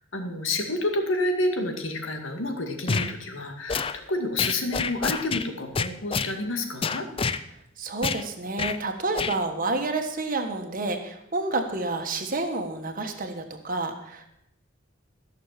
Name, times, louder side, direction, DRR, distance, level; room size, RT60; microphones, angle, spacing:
voice 1, 0.0-7.1, left 2 dB, 70° left, 4 dB, 2.0 m, -29 dB
sound 1, 2.9-3.1 3.7-3.9 4.4-5.5 5.7-6.3 6.8-7.4 8.0-8.2 8.6-8.8 9.1-9.4, left 5 dB, 25° left, 0.5 m, -27 dB
voice 2, 7.8-14.3, right 2 dB, 40° right, 5 dB, 1.5 m, -29 dB
15.0 x 6.6 x 7.5 m, 0.78 s
head